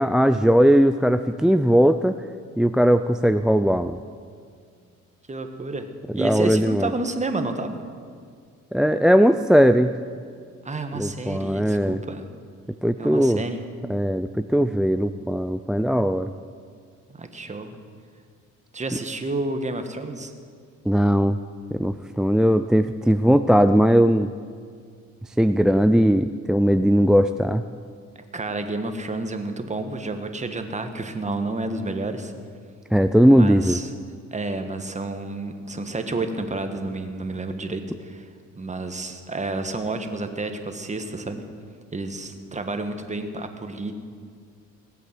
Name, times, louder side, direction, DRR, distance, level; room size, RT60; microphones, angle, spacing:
voice 1, 0.0-2.2 2.6-4.0 6.1-6.9 8.7-9.9 10.9-12.0 12.8-13.4 13.9-16.3 20.9-21.4 21.7-24.3 25.4-27.6 32.9-33.8, equal, ahead, 11 dB, 0.3 m, -19 dB
voice 2, 5.3-5.9 6.1-7.8 10.6-12.3 13.0-13.6 17.1-17.7 18.7-20.3 28.3-32.3 33.3-33.9 34.3-38.3 38.6-41.4 41.9-43.9, right 2 dB, 25° right, 7 dB, 1.4 m, -30 dB
18.5 x 8.5 x 7.5 m, 2.1 s
cardioid pair, 90°, 30 cm